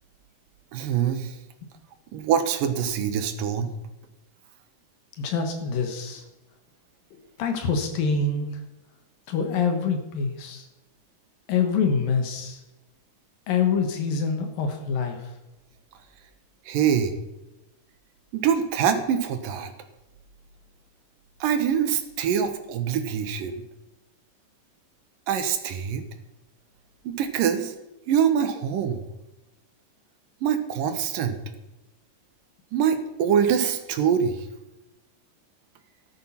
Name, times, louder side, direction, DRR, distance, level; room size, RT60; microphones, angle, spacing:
voice 1, 0.7-1.3 2.1-3.7 16.7-17.1 18.3-19.7 21.4-23.6 25.3-26.0 27.0-27.7 28.1-29.0 30.4-31.4 32.7-34.5, right 8 dB, 75° right, 8 dB, 2.7 m, -24 dB
voice 2, 5.2-6.2 7.1-8.5 9.3-10.6 11.5-12.6 13.5-15.3, left 5 dB, 80° left, 5 dB, 3.1 m, -25 dB
14.0 x 11.0 x 5.7 m, 0.99 s
omnidirectional pair, 4.1 m